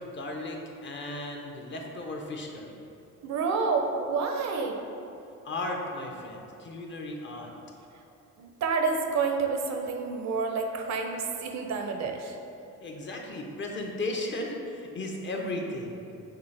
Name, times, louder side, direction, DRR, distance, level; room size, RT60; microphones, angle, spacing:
voice 1, 0.0-2.8 5.4-7.5 12.8-16.1, left 2 dB, 40° left, 1 dB, 0.6 m, -35 dB
voice 2, 3.2-4.8 8.4-12.3, right 4 dB, 65° right, 4 dB, 0.6 m, -29 dB
5.9 x 2.4 x 3.3 m, 2.8 s
cardioid pair, 90°, 30 cm